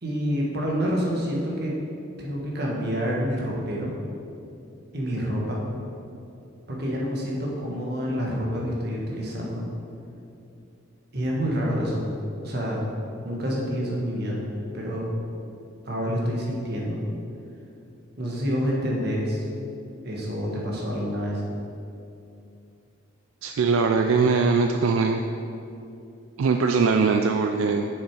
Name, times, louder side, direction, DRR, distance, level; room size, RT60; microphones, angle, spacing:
voice 1, 0.0-1.7 2.2-3.9 4.9-5.6 6.7-9.7 11.1-12.1 12.4-12.9 13.2-14.4 14.7-15.1 15.8-17.1 18.2-19.4 20.0-21.4, equal, 50° right, -3 dB, 1.5 m, -27 dB
voice 2, 23.4-25.2 26.4-27.9, right 4 dB, 80° right, 5 dB, 0.4 m, -21 dB
7.1 x 6.4 x 4.7 m, 2.6 s
head